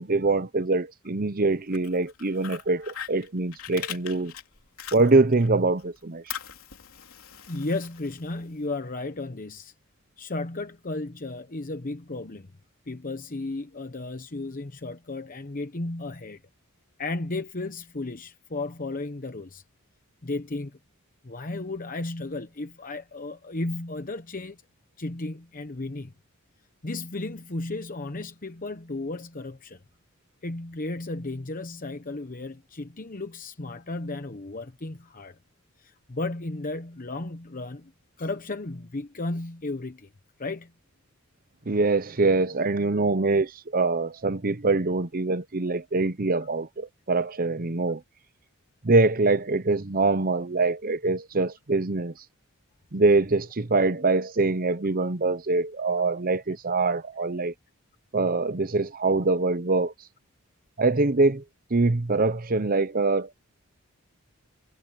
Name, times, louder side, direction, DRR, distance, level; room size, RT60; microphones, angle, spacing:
voice 1, 0.0-4.3 4.9-6.2 41.7-48.0 48.8-52.1 52.9-57.5 58.1-59.9 60.8-61.4 61.7-63.3, right 3 dB, 40° right, 0.9 m, -24 dB
Fire, 1.5-5.5 5.8-8.6, left 10 dB, 70° left, 3.6 m, -41 dB
voice 2, 7.5-9.7 10.2-12.5 12.9-16.4 17.0-19.6 20.2-20.8 21.2-24.6 25.0-26.1 26.8-29.8 30.4-35.4 35.8-37.9 38.2-40.1 40.4-40.7, left 2 dB, 40° left, 1.0 m, -34 dB
head